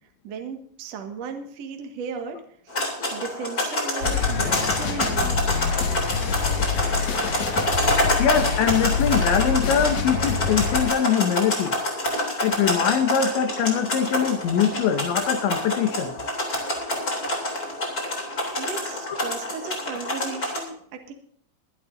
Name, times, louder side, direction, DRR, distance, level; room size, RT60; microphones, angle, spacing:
voice 1, 0.2-5.5 18.6-21.1, right 5 dB, 50° right, 4 dB, 2.2 m, -36 dB
sound 1, 2.7-20.6, left 1 dB, 20° left, 3.1 m, -27 dB
sound 2, 4.0-10.9, left 5 dB, 60° left, 2.1 m, -26 dB
voice 2, 8.2-11.8 12.4-16.1 19.1-19.2, left 8 dB, 85° left, 6 dB, 3.8 m, -23 dB
23.0 x 11.0 x 2.7 m, 0.63 s
omnidirectional pair, 5.2 m